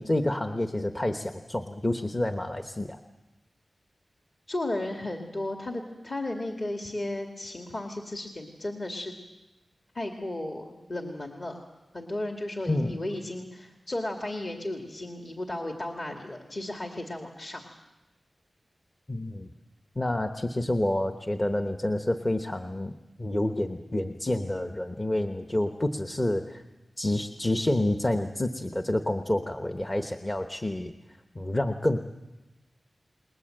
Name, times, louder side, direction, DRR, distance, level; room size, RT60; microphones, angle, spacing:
voice 1, 0.0-3.0 12.7-13.0 19.1-19.5 19.9-26.6 27.0-30.9 31.3-32.1, left 1 dB, 20° left, 7 dB, 1.0 m, -28 dB
voice 2, 4.5-9.1 9.9-11.6 11.9-17.6, left 1 dB, 40° left, 3 dB, 2.1 m, -34 dB
29.0 x 20.5 x 7.8 m, 1.0 s
wide cardioid pair, 110°, 0 cm